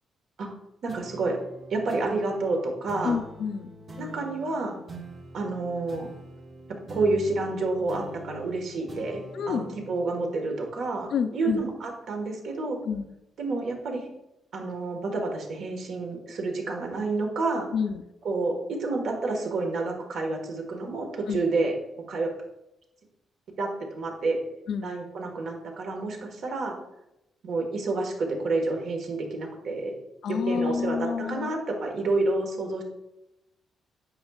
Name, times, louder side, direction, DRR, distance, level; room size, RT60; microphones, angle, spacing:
voice 1, 0.8-1.4 1.7-3.2 4.0-4.8 5.3-6.1 6.9-12.8 13.4-14.1 14.5-17.7 18.2-21.7 22.1-22.3 23.6-24.4 24.8-26.8 27.4-29.9 30.3-32.8, right 3 dB, 60° right, 2 dB, 1.5 m, -29 dB
sound 1, 0.9-11.7, equal, 40° right, 1.5 m, -45 dB
voice 2, 3.0-3.7 9.3-9.8 11.1-11.6 12.8-13.0 17.7-18.0 21.3-21.4 24.7-24.9 30.2-31.5, left 6 dB, 60° left, 9 dB, 0.5 m, -28 dB
8.7 x 6.1 x 2.4 m, 0.88 s
cardioid pair, 150°, 0 cm